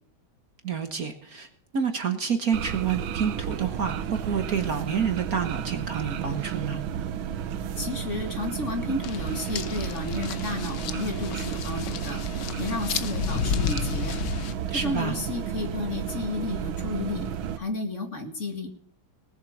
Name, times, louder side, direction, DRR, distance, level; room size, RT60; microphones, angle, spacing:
voice 1, 0.6-1.5 1.7-6.8 14.7-15.2, right 7 dB, 50° right, 7 dB, 1.6 m, -28 dB
sound 1, 2.5-17.6, right 9 dB, 75° right, 1.6 m, -32 dB
voice 2, 7.8-14.1 14.7-17.3 17.6-18.7, left 2 dB, 35° left, 5 dB, 2.3 m, -32 dB
sound 2, 9.0-14.5, left 8 dB, 65° left, 1.4 m, -32 dB
19.0 x 7.4 x 7.2 m, 0.63 s
omnidirectional pair, 2.2 m